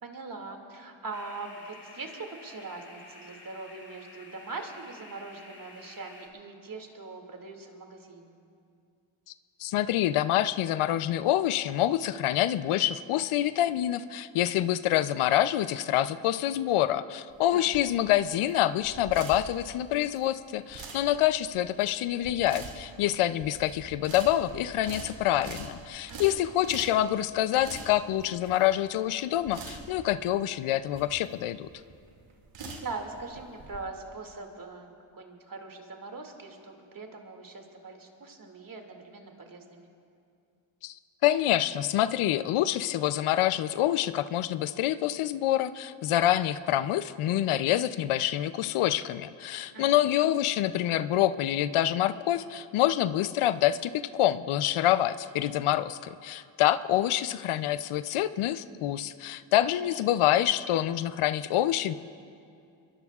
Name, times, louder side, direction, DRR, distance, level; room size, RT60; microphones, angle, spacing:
voice 1, 0.0-8.3 17.5-17.7 26.1-26.3 32.8-39.9 49.7-50.0 59.8-60.2, right 3 dB, 45° right, 3 dB, 2.3 m, -42 dB
sound 1, 1.1-6.3, left 2 dB, 30° left, 3.3 m, -51 dB
voice 2, 9.6-31.7 40.8-40.9 41.2-61.9, left 13 dB, 85° left, 14 dB, 0.6 m, -26 dB
sound 2, 17.3-33.8, right 3 dB, 70° right, 2.4 m, -45 dB
24.0 x 22.0 x 2.4 m, 2.5 s
cardioid pair, 70°, 49 cm